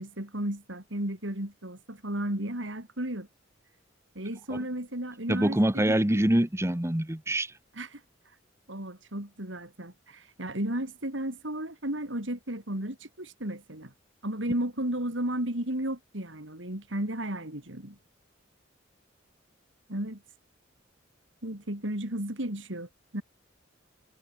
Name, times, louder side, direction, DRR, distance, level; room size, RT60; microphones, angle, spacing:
voice 1, 0.0-3.3 4.1-6.3 7.7-8.0 8.7-13.9 14.2-18.0 19.9-20.2 21.4-23.2, right 1 dB, 70° right, 4.8 m, -34 dB
voice 2, 5.3-7.5, right 1 dB, 15° right, 1.2 m, -25 dB
head